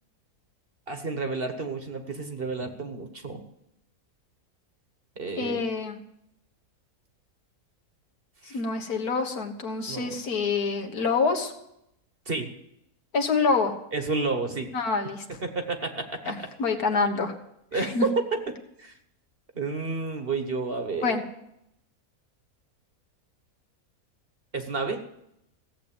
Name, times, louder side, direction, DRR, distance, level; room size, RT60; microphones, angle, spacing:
voice 1, 0.9-3.4 5.2-5.7 8.4-8.6 9.9-10.2 12.3-12.5 13.9-14.7 15.4-16.3 17.7-18.2 18.8-18.9 19.5-21.1 24.5-25.0, right 3 dB, 40° right, 7 dB, 1.3 m, -30 dB
voice 2, 5.4-6.0 8.5-11.5 13.1-13.7 14.7-15.3 16.3-17.3 17.7-18.1 21.0-21.2, left 4 dB, 70° left, 3 dB, 1.9 m, -26 dB
16.0 x 7.8 x 8.8 m, 0.80 s
omnidirectional pair, 1.6 m